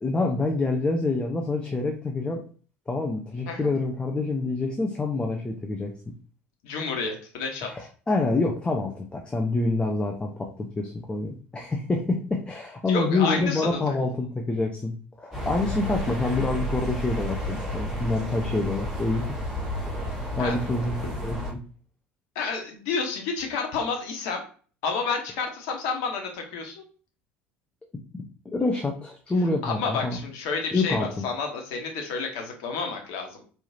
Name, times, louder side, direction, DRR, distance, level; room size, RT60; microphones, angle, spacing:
voice 1, 0.0-2.4 2.9-5.9 7.7-19.4 19.9-21.6 28.5-30.2 30.7-31.1, left 3 dB, 15° left, 1 dB, 0.8 m, -27 dB
voice 2, 6.6-7.7 12.9-14.0 20.4-20.6 22.3-24.4 24.8-26.8 29.6-33.4, left 4 dB, 60° left, 2 dB, 1.3 m, -30 dB
sound 1, 15.3-21.5, equal, 5° right, 2.4 m, -31 dB
4.7 x 3.5 x 2.8 m, 0.41 s
figure-of-eight pair, 65°, 6 cm